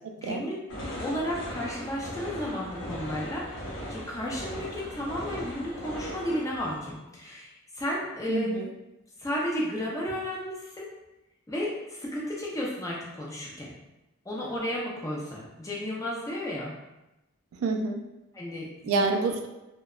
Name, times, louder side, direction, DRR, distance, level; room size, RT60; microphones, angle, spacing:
voice 1, 0.2-0.6 1.0-8.5 9.2-10.9 11.5-13.7 14.3-16.7 18.3-19.0, left 1 dB, 15° left, -4 dB, 0.4 m, -33 dB
sound 1, 0.7-6.9, equal, 70° left, 0.7 m, -38 dB
voice 2, 8.3-8.7 17.6-18.0 18.8-19.5, right 3 dB, 80° right, 4 dB, 0.3 m, -27 dB
2.7 x 2.1 x 2.3 m, 0.97 s
head